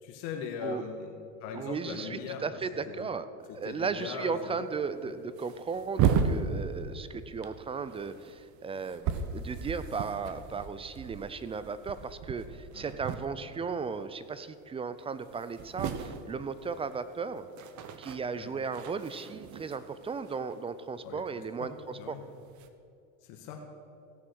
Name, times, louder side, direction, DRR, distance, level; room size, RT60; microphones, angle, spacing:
voice 1, 0.0-1.1 1.4-2.5 2.9-3.1 3.5-4.6 12.7-12.9 18.4-18.5 21.0-22.2 23.2-23.6, left 6 dB, 65° left, 2 dB, 1.5 m, -40 dB
voice 2, 1.5-3.3 3.5-17.5 18.0-22.2, right 5 dB, 15° right, 13 dB, 0.4 m, -36 dB
sound 1, 3.5-3.7 4.0-4.1 4.8-4.9 5.2-7.1 7.4-13.7 14.0-14.3 14.7-14.8 15.0-21.3 22.2-22.7, right 7 dB, 45° right, 1.0 m, -35 dB
16.5 x 6.1 x 6.3 m, 2.6 s
supercardioid pair, 100°, 39 cm